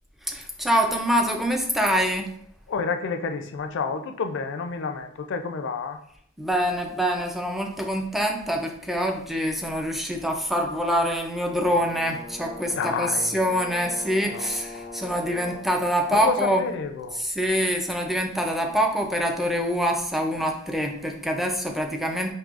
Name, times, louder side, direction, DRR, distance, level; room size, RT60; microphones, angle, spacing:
voice 1, 0.3-2.3 6.4-16.7 17.1-22.3, equal, ahead, 2 dB, 0.4 m, -25 dB
voice 2, 2.7-6.0 12.8-13.3 14.3-15.0 16.1-17.2, left 5 dB, 60° left, 7 dB, 0.4 m, -29 dB
Brass instrument, 11.6-15.8, left 2 dB, 35° right, 1.5 m, -40 dB
5.3 x 2.7 x 2.4 m, 0.66 s
head